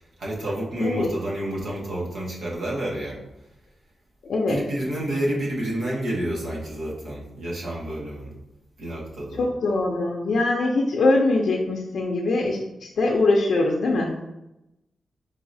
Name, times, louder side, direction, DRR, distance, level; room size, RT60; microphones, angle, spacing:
voice 1, 0.2-3.2 4.4-8.3 8.8-9.4, right 1 dB, 70° right, -4 dB, 1.4 m, -29 dB
voice 2, 0.8-1.1 4.3-4.6 9.4-12.6 13.0-14.2, left 2 dB, 70° left, -1 dB, 0.5 m, -22 dB
4.8 x 3.8 x 2.6 m, 0.90 s
wide cardioid pair, 180°, 0 cm